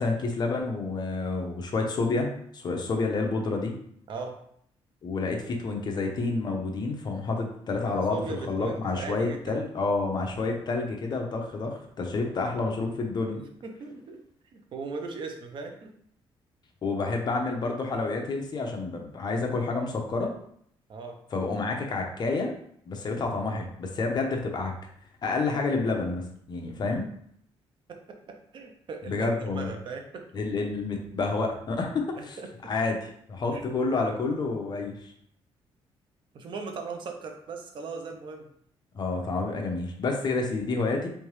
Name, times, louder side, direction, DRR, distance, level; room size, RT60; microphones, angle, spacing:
voice 1, 0.0-3.7 5.0-13.4 16.8-20.3 21.3-22.5 22.9-24.7 25.2-26.2 26.5-27.1 29.0-29.7 30.3-32.4 32.6-35.1 38.9-41.1, left 3 dB, 45° left, 2 dB, 0.8 m, -29 dB
voice 2, 7.8-9.6 13.3-14.2 14.5-15.9 20.9-21.2 27.9-30.2 32.2-32.5 33.5-33.7 36.3-38.5, right 4 dB, 55° right, 4 dB, 0.8 m, -38 dB
3.7 x 3.4 x 3.2 m, 0.66 s
cardioid pair, 120°, 10 cm